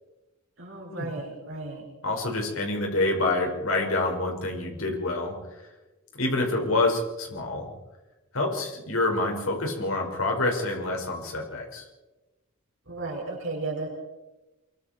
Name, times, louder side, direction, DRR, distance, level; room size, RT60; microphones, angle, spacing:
voice 1, 0.6-1.8 12.9-13.9, right 3 dB, 60° right, -2 dB, 5.5 m, -34 dB
voice 2, 2.0-5.4 6.1-7.7 8.3-11.8, left 2 dB, 70° left, 1 dB, 5.4 m, -27 dB
24.5 x 23.5 x 4.5 m, 1.1 s
head